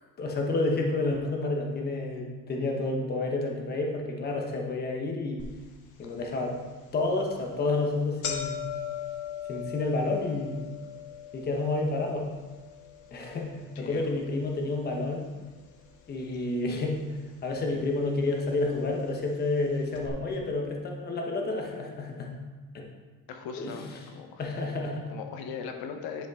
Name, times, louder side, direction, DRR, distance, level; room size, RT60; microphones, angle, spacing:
voice 1, 0.2-5.5 6.0-6.6 6.9-8.7 9.5-10.7 11.3-12.2 13.1-15.3 16.1-22.3 22.7-22.9 23.6-24.0 24.4-25.0, left 2 dB, 25° left, 1 dB, 0.9 m, -30 dB
sound 1, 5.4-5.5 6.0-6.1 7.0-7.2 7.5-7.6 7.8-16.1 16.3-17.1 17.9-18.0 18.9-19.0 19.3-19.4 19.9-20.1, left 9 dB, 55° left, 1.1 m, -40 dB
voice 2, 13.7-14.1 23.3-24.6 25.1-26.3, left 6 dB, 90° left, 5 dB, 1.0 m, -39 dB
10.5 x 5.2 x 3.6 m, 1.3 s
cardioid pair, 170°, 36 cm